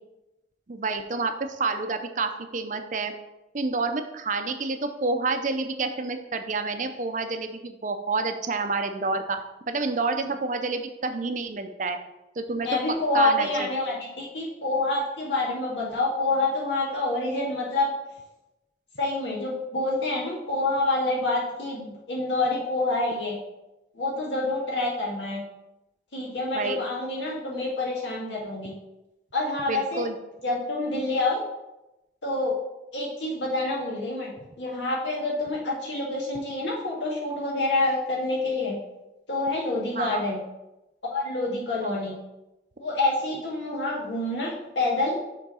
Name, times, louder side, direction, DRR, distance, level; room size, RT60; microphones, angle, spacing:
voice 1, 0.7-3.1 3.5-9.4 9.7-12.0 12.4-13.7 26.5-26.8 29.7-30.2 39.9-40.2 41.8-41.9, right 3 dB, 45° right, 7 dB, 0.5 m, -29 dB
voice 2, 12.6-17.9 19.0-23.4 24.0-25.4 26.1-28.7 29.3-30.0 30.4-31.4 32.2-32.5 32.9-34.3 34.6-38.7 39.3-40.4 41.1-42.1 42.8-45.2, left 2 dB, 85° left, -4 dB, 2.0 m, -27 dB
6.0 x 3.9 x 5.5 m, 0.96 s
head